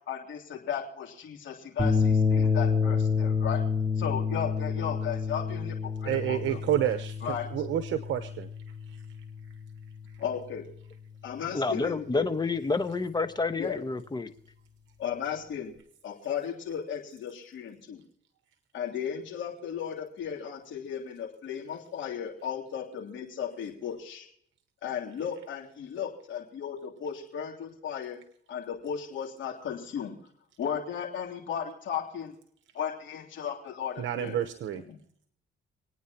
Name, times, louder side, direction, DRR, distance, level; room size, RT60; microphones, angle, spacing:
voice 1, 0.1-3.6 4.0-5.7 6.0-6.6 7.2-7.5 10.2-10.6 11.2-12.3 13.6-13.8 15.0-15.7 16.0-18.0 18.7-24.3 24.8-28.2 28.5-30.1 30.6-32.3 32.7-34.4 34.9-35.0, left 8 dB, 70° left, 3.2 m, -35 dB
sound 1, 1.8-10.3, left 5 dB, 20° right, 4.5 m, -29 dB
voice 2, 6.0-7.2 7.5-8.5 34.0-34.8, right 11 dB, 75° right, 1.0 m, -29 dB
voice 3, 11.5-14.3, left 3 dB, 20° left, 1.2 m, -29 dB
27.5 x 9.4 x 2.9 m
cardioid pair, 90°, 20 cm